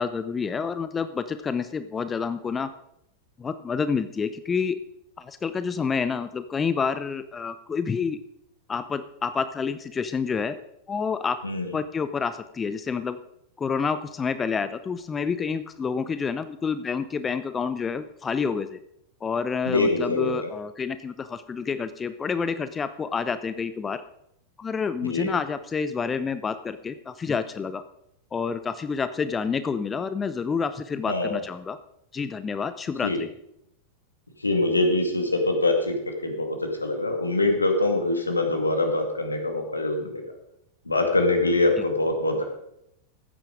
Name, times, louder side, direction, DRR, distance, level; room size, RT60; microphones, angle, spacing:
voice 1, 0.0-2.7 3.4-4.8 5.2-8.2 8.7-10.6 10.9-11.4 11.7-13.2 13.6-18.8 19.2-24.0 24.6-27.8 28.3-31.8 32.1-33.3 41.8-41.9, left 5 dB, 20° left, 12 dB, 0.6 m, -28 dB
voice 2, 19.6-20.3 25.0-25.3 31.1-31.4 33.0-33.2 34.4-40.2 40.9-42.4, left 2 dB, 80° left, 4 dB, 2.1 m, -24 dB
15.0 x 9.1 x 4.9 m, 0.77 s
figure-of-eight pair, 90°, 0 cm